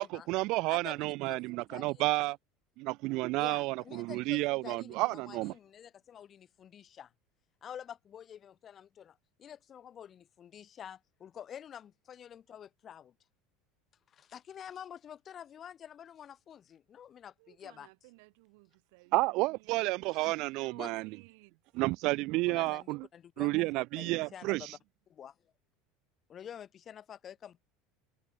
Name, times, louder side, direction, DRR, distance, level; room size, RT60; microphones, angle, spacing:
voice 1, 0.0-2.4 2.8-5.5 19.1-21.1 21.7-23.1 23.4-24.7, right 22 dB, 50° right, 1.1 m, -31 dB
voice 2, 0.7-1.4 1.7-2.1 3.4-7.1 7.6-13.1 14.1-17.9 20.1-20.4 20.7-20.9 22.5-24.8 25.1-25.4 26.3-27.6, left 9 dB, 30° left, 3.6 m, -48 dB
voice 3, 17.4-21.6, right 29 dB, 70° right, 3.9 m, -58 dB
cardioid pair, 155°, 0 cm